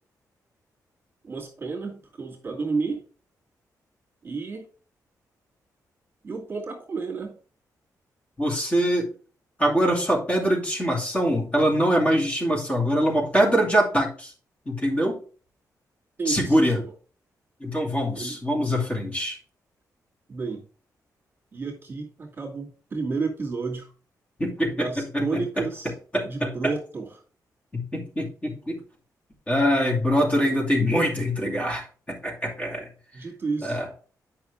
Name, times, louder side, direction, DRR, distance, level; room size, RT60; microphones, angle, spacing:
voice 1, 1.2-3.0 4.2-4.7 6.2-7.4 16.2-16.9 18.2-18.4 20.3-20.7 21.5-23.9 24.7-25.9 26.2-27.1 33.1-33.8, right 4 dB, 30° right, -1 dB, 2.5 m, -31 dB
voice 2, 8.4-9.1 9.6-14.3 14.7-15.2 16.3-16.8 17.6-19.4 24.4-24.9 25.1-25.4 26.1-26.5 27.7-28.8 29.5-32.9 33.6-33.9, equal, 20° left, -1 dB, 2.6 m, -23 dB
9.3 x 5.7 x 3.5 m, 0.39 s
wide cardioid pair, 125°, 7 cm